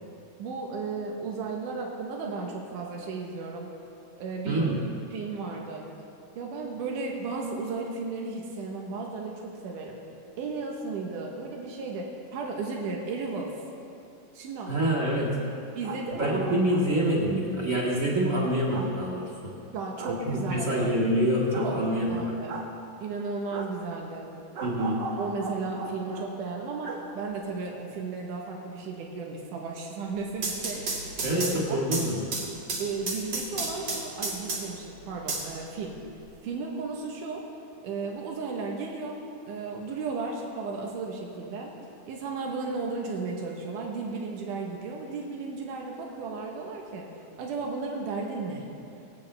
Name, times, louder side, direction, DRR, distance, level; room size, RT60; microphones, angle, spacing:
voice 1, 0.4-3.7 4.2-4.7 5.1-5.9 6.4-10.0 10.4-13.5 14.3-14.9 15.8-16.4 19.7-20.9 21.6-21.8 22.1-22.6 23.0-24.3 25.1-30.9 31.3-31.9 32.8-35.9 36.4-37.5 37.8-39.2 39.5-41.7 42.1-47.1 47.4-48.6, right 4 dB, 90° right, 0 dB, 2.7 m, -34 dB
voice 2, 4.5-4.8 14.7-15.3 16.1-19.5 20.1-22.1 24.6-25.0 31.2-32.2, right 1 dB, 30° right, -5 dB, 2.2 m, -26 dB
sound 1, 15.6-17.0 18.7-18.9 20.0-20.2 21.5-21.7 22.5-22.7 23.5-23.7 24.5-26.3 26.8-27.0 27.3-27.4, right 4 dB, 70° right, 1.0 m, -38 dB
sound 2, 30.2-34.8 35.3-36.3, right 3 dB, 55° right, 3.2 m, -33 dB
23.5 x 8.9 x 3.4 m, 2.7 s
omnidirectional pair, 3.6 m